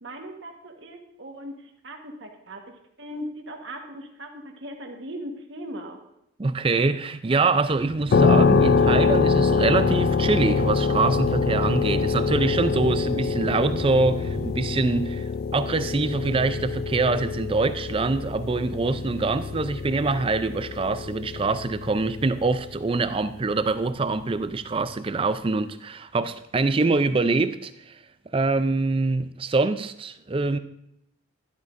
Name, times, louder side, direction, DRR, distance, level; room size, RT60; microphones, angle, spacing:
voice 1, 0.0-6.0, equal, 60° right, 1.3 m, -39 dB
voice 2, 6.4-28.0 28.3-30.6, right 3 dB, 25° right, 0.4 m, -24 dB
sound 1, 7.4-14.5, right 2 dB, 90° right, 0.9 m, -37 dB
sound 2, 8.1-22.8, left 5 dB, 50° left, 0.3 m, -25 dB
12.0 x 12.0 x 2.6 m
head